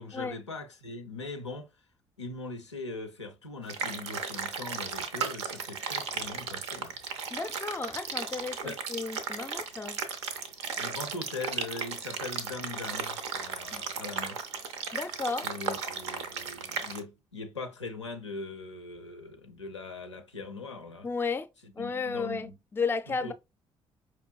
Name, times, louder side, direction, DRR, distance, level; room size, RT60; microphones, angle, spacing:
voice 1, 0.0-1.7 2.2-6.9 8.6-8.8 10.8-14.4 15.4-21.1 21.6-22.5 23.2-23.3, left 3 dB, 85° left, 0.4 m, -41 dB
sound 1, 3.7-17.0, right 5 dB, 75° right, 0.5 m, -35 dB
voice 2, 7.3-10.0 13.7-13.8 14.9-15.5 21.0-21.5 21.8-23.3, left 4 dB, 15° left, 0.4 m, -33 dB
4.9 x 3.0 x 2.2 m
figure-of-eight pair, 45°, 14 cm